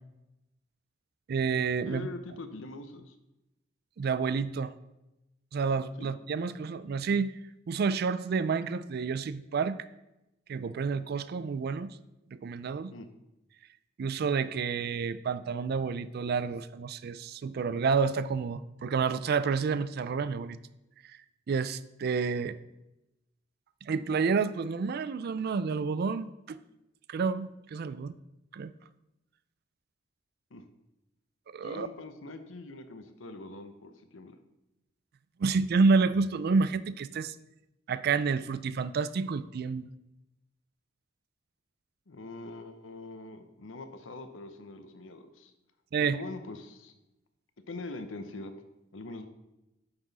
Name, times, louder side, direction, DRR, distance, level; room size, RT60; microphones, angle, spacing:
voice 1, 1.3-2.1 4.0-4.7 5.5-7.3 7.7-9.9 10.5-12.0 12.3-12.9 14.0-20.6 21.0-21.2 21.5-22.6 23.8-26.6 27.1-28.2 28.5-28.7 31.5-31.9 35.4-37.4 37.9-39.9 45.9-46.2, right 5 dB, 55° right, 16 dB, 0.4 m, -29 dB
voice 2, 1.8-3.1 6.0-6.1 12.9-13.1 30.5-30.6 31.6-34.4 42.1-45.5 46.0-46.9 47.7-48.5 48.9-49.3, left 2 dB, 85° left, 8 dB, 0.8 m, -43 dB
9.6 x 6.0 x 4.1 m, 0.94 s
head